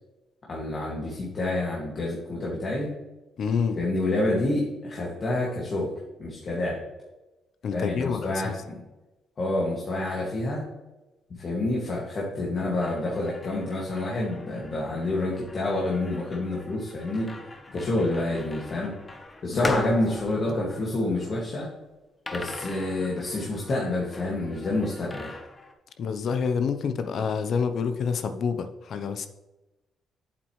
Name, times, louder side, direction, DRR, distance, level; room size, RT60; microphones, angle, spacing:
voice 1, 0.5-2.9 3.8-5.9 6.2-6.8 7.7-8.5 9.4-10.7 11.4-17.3 17.7-18.9 19.4-21.7 22.3-25.3, left 2 dB, 45° left, -4 dB, 2.0 m, -28 dB
voice 2, 3.4-3.8 7.6-8.6 19.5-19.9 26.0-29.3, left 6 dB, 60° left, 9 dB, 0.7 m, -28 dB
sound 1, 12.8-21.5 22.3-25.7, left 1 dB, 25° left, 1.2 m, -40 dB
8.4 x 7.6 x 3.2 m, 1.0 s
cardioid pair, 90°, 0 cm